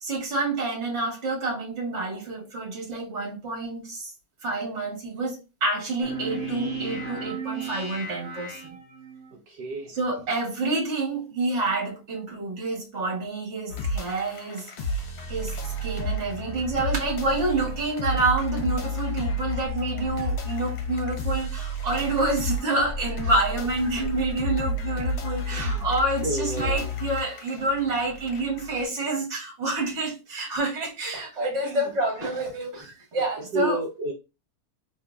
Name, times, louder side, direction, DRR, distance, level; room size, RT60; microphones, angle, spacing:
voice 1, 0.0-4.1 4.4-8.8 9.9-15.0 15.3-33.8, right 2 dB, 45° right, 1.7 m, -28 dB
sound 1, 6.0-9.3, right 4 dB, 35° left, 1.3 m, -34 dB
voice 2, 9.3-10.0 24.0-24.1 25.4-25.9 26.2-26.9 31.6-31.8 33.5-34.1, right 2 dB, 80° right, 1.3 m, -31 dB
sound 2, 13.7-28.8, left 1 dB, 70° left, 1.3 m, -31 dB
3.8 x 3.2 x 2.3 m
omnidirectional pair, 1.8 m